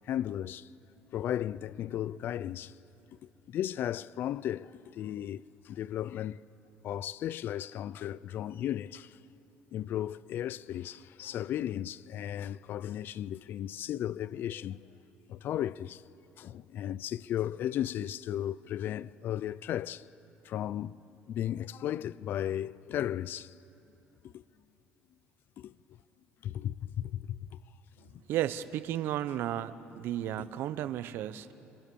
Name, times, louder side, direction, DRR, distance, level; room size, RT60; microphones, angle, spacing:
voice 1, 0.1-0.7 1.1-2.7 3.5-6.4 6.8-9.2 9.7-14.9 15.3-16.0 16.4-20.0 20.4-21.0 21.3-23.6 24.3-24.4 25.6-25.7 26.4-27.5, left 11 dB, 55° left, 0.5 m, -35 dB
voice 2, 28.3-31.5, right 12 dB, 65° right, 0.9 m, -33 dB
27.5 x 26.0 x 7.1 m
cardioid pair, 110°, 4 cm